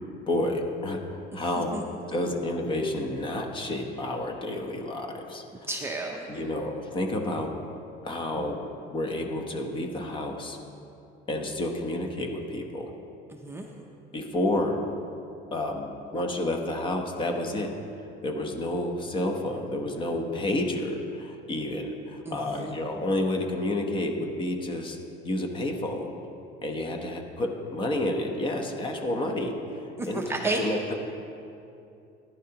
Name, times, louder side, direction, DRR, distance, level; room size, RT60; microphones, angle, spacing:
voice 1, 0.3-1.7 2.1-5.4 6.3-7.5 8.0-8.6 8.9-10.6 11.3-12.9 14.1-14.8 15.5-17.7 18.2-25.0 25.2-26.1 26.6-29.6 30.1-30.2 30.6-31.0, left 1 dB, 25° left, 3 dB, 0.9 m, -30 dB
voice 2, 5.7-6.3 13.3-13.9 22.3-22.8 30.0-30.6, right 2 dB, 15° right, 0 dB, 0.6 m, -32 dB
14.5 x 11.0 x 2.9 m, 2.7 s
cardioid pair, 155°, 19 cm